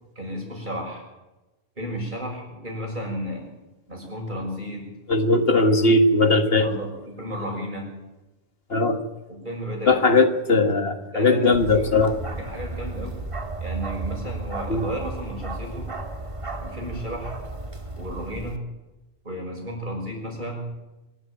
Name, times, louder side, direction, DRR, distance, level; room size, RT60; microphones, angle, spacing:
voice 1, 0.1-1.0 1.7-3.5 3.9-4.9 5.6-5.7 6.5-7.9 9.3-10.2 11.1-13.2 13.6-15.9 16.6-17.3 18.0-18.7 19.2-20.7, equal, 45° right, 1 dB, 6.8 m, -33 dB
voice 2, 5.1-6.8 8.7-9.0 9.9-12.1 14.7-14.8, left 2 dB, 65° left, 6 dB, 2.0 m, -19 dB
Bark, 11.5-18.6, right 2 dB, 30° right, 1.9 m, -34 dB
25.5 x 13.0 x 9.0 m, 1.1 s
omnidirectional pair, 1.1 m